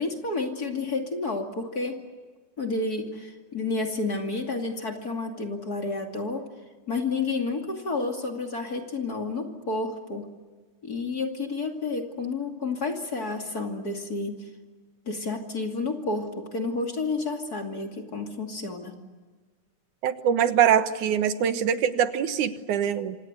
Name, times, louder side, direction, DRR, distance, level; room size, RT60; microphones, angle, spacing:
voice 1, 0.0-2.0 2.6-6.5 6.9-10.3 10.8-14.4 15.1-19.0, left 3 dB, 30° left, 3 dB, 2.8 m, -30 dB
voice 2, 20.0-23.2, right 9 dB, 85° right, 10 dB, 2.8 m, -23 dB
27.5 x 26.0 x 8.2 m, 1.4 s
omnidirectional pair, 3.4 m